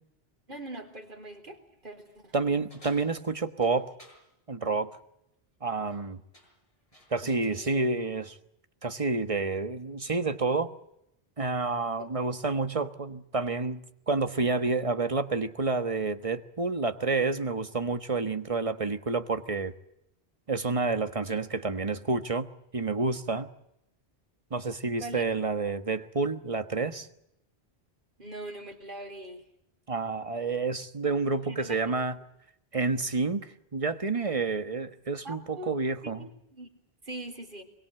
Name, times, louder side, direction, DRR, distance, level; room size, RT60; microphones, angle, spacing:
voice 1, 0.5-2.3 7.2-7.9 12.0-12.1 25.0-25.2 28.2-29.4 31.4-32.0 35.2-35.7 36.0-36.7 37.0-37.6, right 1 dB, 50° right, 4 dB, 4.1 m, -42 dB
voice 2, 2.3-3.9 4.5-5.0 5.6-6.2 7.1-8.4 8.8-10.7 11.4-13.8 14.1-19.7 20.5-22.5 22.7-23.5 24.5-27.1 29.9-32.2 32.7-36.3, right 3 dB, 30° right, 9 dB, 1.4 m, -29 dB
sound 1, 2.7-4.2 5.7-6.0 6.3-7.5, left 1 dB, 30° left, 7.6 m, -56 dB
25.0 x 22.5 x 7.8 m, 0.81 s
omnidirectional pair, 1.1 m